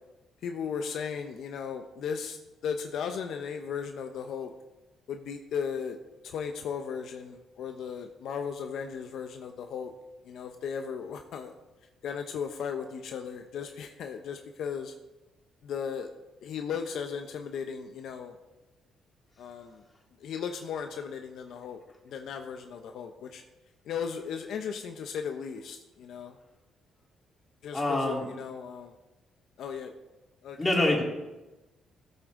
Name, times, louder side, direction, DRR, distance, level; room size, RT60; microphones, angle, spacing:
voice 1, 0.4-2.4 2.6-4.5 5.1-6.0 6.2-9.9 10.3-11.5 12.0-14.9 15.6-16.1 16.4-18.3 19.4-19.8 20.2-21.8 22.1-23.4 23.9-26.3 27.6-28.9 29.6-29.9 30.4-30.6, left 7 dB, 75° left, 5 dB, 0.8 m, -36 dB
voice 2, 27.7-28.3 30.6-31.0, left 1 dB, 20° left, -2 dB, 3.5 m, -25 dB
15.5 x 8.1 x 3.8 m, 1.1 s
cardioid pair, 90°, 0 cm